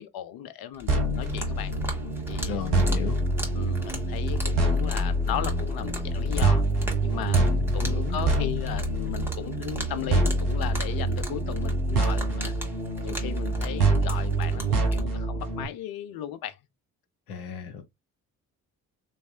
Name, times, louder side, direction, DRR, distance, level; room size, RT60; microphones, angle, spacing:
voice 1, 0.0-1.7 2.3-3.0 3.5-6.7 7.0-7.5 7.7-12.5 13.0-16.6, left 10 dB, 55° left, 0.7 m, -36 dB
sound 1, 0.7-15.1, left 1 dB, 5° right, 1.7 m, -38 dB
sound 2, 0.9-15.6, right 2 dB, 85° right, 0.9 m, -26 dB
voice 2, 2.5-3.3 7.4-8.2 17.3-17.8, left 7 dB, 90° left, 0.6 m, -35 dB
3.4 x 3.2 x 2.4 m
figure-of-eight pair, 40°, 44 cm